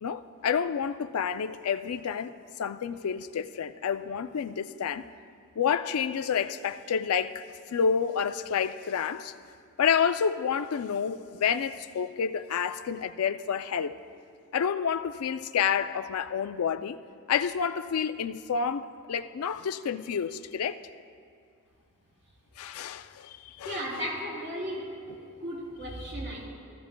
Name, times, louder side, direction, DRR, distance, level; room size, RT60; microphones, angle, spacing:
voice 1, 0.0-5.1 5.6-9.3 9.8-14.0 14.5-17.0 17.3-20.8 22.6-23.8, left 7 dB, 90° left, 0.4 m, -29 dB
voice 2, 23.6-26.5, equal, 55° right, 3.3 m, -35 dB
15.5 x 14.5 x 2.2 m
head